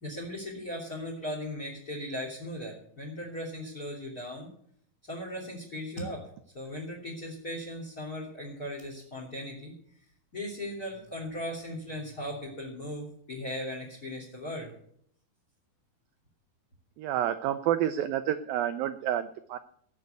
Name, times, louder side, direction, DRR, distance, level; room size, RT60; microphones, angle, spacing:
voice 1, 0.0-4.5 5.1-6.3 6.5-9.7 10.3-14.7, left 1 dB, 25° left, 2 dB, 2.9 m, -38 dB
voice 2, 17.0-19.6, right 11 dB, 80° right, 10 dB, 2.1 m, -29 dB
18.0 x 6.6 x 8.2 m, 0.65 s
omnidirectional pair, 4.9 m